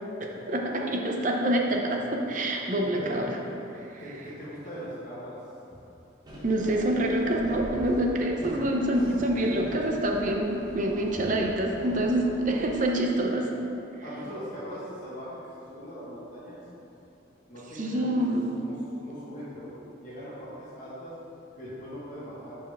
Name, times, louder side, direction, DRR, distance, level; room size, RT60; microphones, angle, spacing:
voice 1, 0.2-3.3 3.9-4.0 6.4-13.5 17.8-18.5, right 1 dB, 40° right, 1 dB, 0.7 m, -26 dB
voice 2, 4.0-5.3 5.7-5.8 9.5-9.8 12.4-12.5 14.0-15.4 15.7-16.6 17.5-18.2 18.6-21.1 21.5-22.5, equal, 40° left, -11 dB, 1.3 m, -40 dB
sound 1, 6.2-12.8, equal, 20° right, 1.0 m, -42 dB
7.0 x 5.3 x 3.5 m, 3.0 s
head